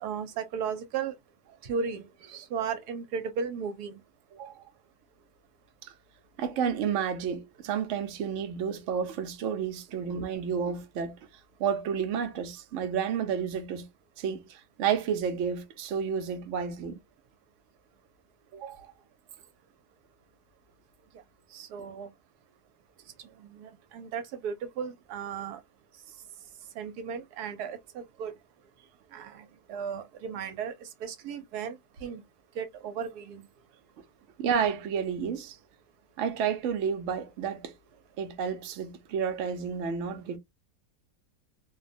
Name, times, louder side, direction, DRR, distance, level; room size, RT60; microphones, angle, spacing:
voice 1, 0.0-1.1 1.6-3.9 21.5-22.1 23.6-25.6 26.8-28.3 29.1-29.4 29.7-30.7 31.0-32.2 32.6-33.4, right 6 dB, 80° right, 1.1 m, -35 dB
voice 2, 4.3-4.6 5.8-5.9 6.4-11.2 11.6-13.9 14.2-17.0 18.5-18.9 34.4-35.6 36.2-37.7 38.2-40.4, right 7 dB, 65° right, 0.8 m, -31 dB
2.6 x 2.2 x 2.4 m
omnidirectional pair, 1.7 m